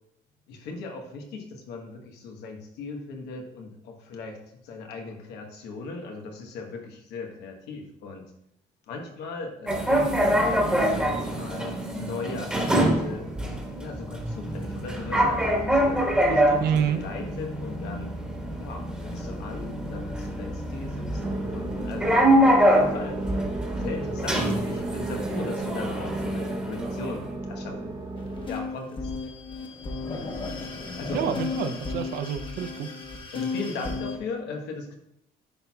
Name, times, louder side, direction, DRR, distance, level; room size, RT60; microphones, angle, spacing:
voice 1, 0.5-8.2 8.9-11.7 12.0-13.3 13.8-16.0 16.3-18.1 18.6-22.3 22.6-23.2 23.7-27.9 28.5-29.1 31.0-31.3 33.3-34.9, left 3 dB, 85° left, 2 dB, 1.2 m, -37 dB
sound 1, 9.7-27.2, equal, 5° right, 1.4 m, -25 dB
voice 2, 16.6-17.0 31.1-32.9, right 8 dB, 70° right, 9 dB, 0.6 m, -28 dB
sound 2, 21.2-28.5, right 2 dB, 30° right, 1.5 m, -33 dB
sound 3, 28.2-34.2, left 3 dB, 30° left, 1.1 m, -34 dB
10.0 x 4.3 x 2.3 m, 0.79 s
cardioid pair, 110°, 17 cm